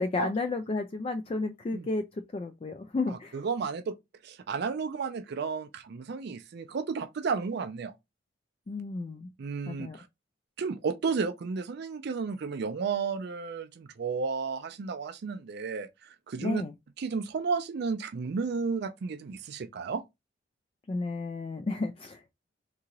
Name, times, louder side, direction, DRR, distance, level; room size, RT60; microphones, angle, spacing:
voice 1, 0.0-3.4 8.7-9.3 9.7-10.0 16.4-16.7 20.9-22.2, left 3 dB, 30° left, 0.3 m, -32 dB
voice 2, 3.1-3.9 4.2-7.9 9.4-10.1 10.6-16.6 17.0-20.0, right 5 dB, 60° right, 0.4 m, -33 dB
3.7 x 2.8 x 3.0 m
head